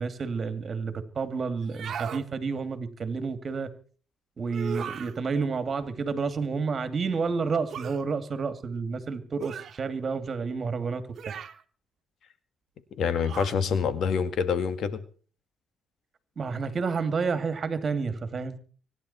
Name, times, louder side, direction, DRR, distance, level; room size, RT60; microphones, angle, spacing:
voice 1, 0.0-3.7 4.4-11.3 16.4-18.6, right 5 dB, 45° right, 10 dB, 2.6 m, -30 dB
sound 1, 1.6-2.3 4.5-5.2 7.7-8.0 9.4-9.8 11.2-11.6 13.2-13.6, right 8 dB, 60° right, 1.4 m, -37 dB
voice 2, 13.0-15.0, left 6 dB, 65° left, 12 dB, 1.9 m, -26 dB
25.0 x 11.0 x 4.4 m, 0.42 s
cardioid pair, 90°, 0 cm